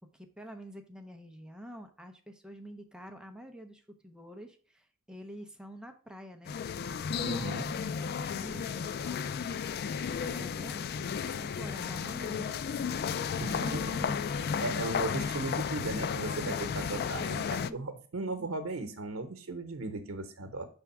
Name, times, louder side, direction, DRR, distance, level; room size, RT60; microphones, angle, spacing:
voice 1, 0.1-6.5 6.9-9.2 9.9-12.8 14.6-15.2 15.6-16.7 17.7-17.8, equal, 5° right, 5 dB, 0.6 m, -48 dB
sound 1, 6.5-17.7, left 6 dB, 50° left, 0.3 m, -33 dB
voice 2, 7.2-7.7 13.4-20.7, right 2 dB, 85° right, 7 dB, 0.8 m, -37 dB
6.0 x 3.5 x 5.7 m, 0.41 s
head